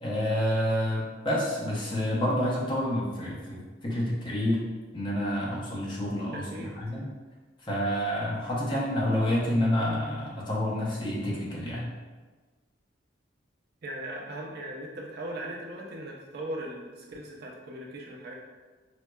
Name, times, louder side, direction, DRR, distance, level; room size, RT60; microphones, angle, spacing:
voice 1, 0.0-4.6 4.9-7.1 7.6-11.9, equal, 25° left, -5 dB, 0.7 m, -28 dB
voice 2, 6.3-7.0 13.8-18.3, right 1 dB, 55° right, -1 dB, 0.5 m, -39 dB
4.4 x 2.0 x 2.2 m, 1.3 s
head